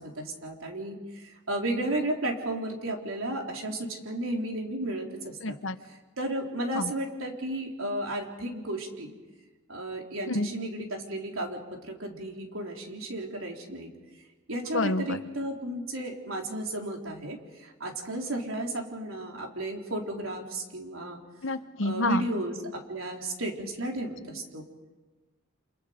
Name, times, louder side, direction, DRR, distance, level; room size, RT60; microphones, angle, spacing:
voice 1, 0.0-5.4 6.2-9.1 9.7-13.9 14.5-21.2 21.8-24.7, right 1 dB, 85° right, 1 dB, 3.7 m, -33 dB
voice 2, 5.4-5.8 6.7-6.9 10.3-10.5 14.7-15.2 21.4-22.3, left 2 dB, 65° left, 10 dB, 1.0 m, -28 dB
29.0 x 27.5 x 5.1 m, 1.3 s
head